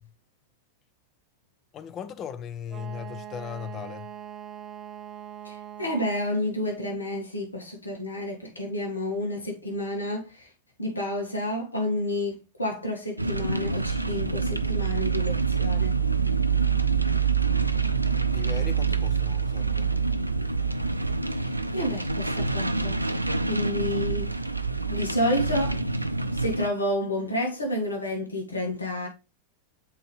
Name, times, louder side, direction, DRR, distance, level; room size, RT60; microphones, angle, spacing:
voice 1, 1.7-4.1 18.3-20.0, left 8 dB, 30° left, 0.6 m, -38 dB
Wind instrument woodwind instrument, 2.7-6.4, right 10 dB, 20° right, 0.5 m, -42 dB
voice 2, 5.4-10.5 10.8-16.0 21.3-23.0 23.5-24.3 24.8-25.8 26.3-29.1, left 1 dB, 80° left, 1.7 m, -30 dB
sound 1, 13.2-26.7, right 5 dB, 85° right, 0.4 m, -26 dB
7.5 x 4.3 x 3.2 m
figure-of-eight pair, 90°, 0 cm